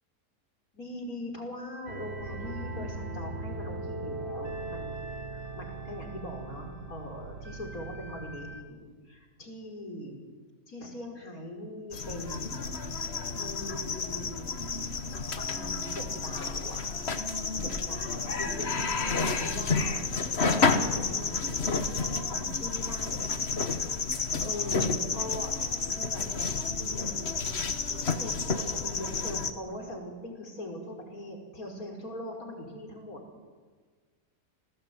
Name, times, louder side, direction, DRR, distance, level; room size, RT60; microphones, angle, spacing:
voice 1, 0.7-4.9 5.3-10.2 10.7-12.7 13.4-14.5 15.4-16.8 17.5-19.9 20.5-23.2 23.6-23.8 24.4-25.5 25.9-26.2 26.8-27.4 28.1-33.2, left 1 dB, 60° left, 3 dB, 5.5 m, -41 dB
sound 1, 1.9-8.6, right 2 dB, 40° right, 2.5 m, -39 dB
sound 2, 11.9-29.5, left 4 dB, 40° left, 1.7 m, -30 dB
30.0 x 19.5 x 9.4 m, 1.5 s
omnidirectional pair, 1.7 m